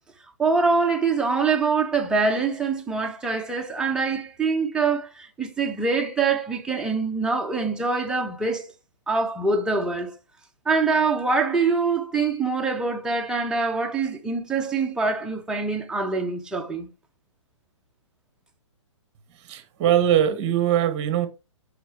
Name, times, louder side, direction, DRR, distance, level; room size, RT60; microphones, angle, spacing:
voice 1, 0.4-8.7 9.1-10.1 10.6-16.9, right 4 dB, 5° right, 1.0 m, -24 dB
voice 2, 19.5-21.3, right 10 dB, 30° right, 1.3 m, -21 dB
8.9 x 5.0 x 3.0 m
figure-of-eight pair, 125°, 16 cm